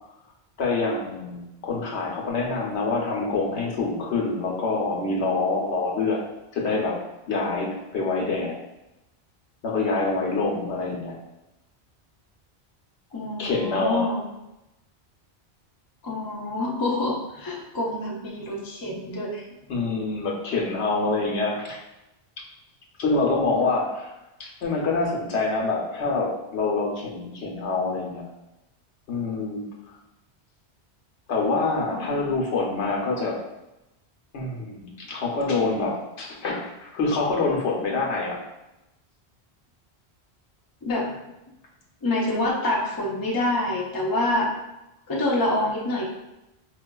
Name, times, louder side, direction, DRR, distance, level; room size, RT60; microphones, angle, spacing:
voice 1, 0.6-6.2 6.5-7.0 7.3-8.5 9.6-11.1 13.4-14.1 19.7-21.8 23.0-24.1 24.4-28.2 29.1-29.9 31.3-33.4 34.3-38.4, left 3 dB, 80° left, -1 dB, 1.0 m, -26 dB
voice 2, 13.1-14.2 16.0-19.5 31.9-32.3 40.8-41.1 42.0-44.5 45.1-46.1, left 1 dB, 30° left, -2 dB, 0.4 m, -26 dB
4.5 x 2.4 x 2.2 m, 0.94 s
omnidirectional pair, 1.1 m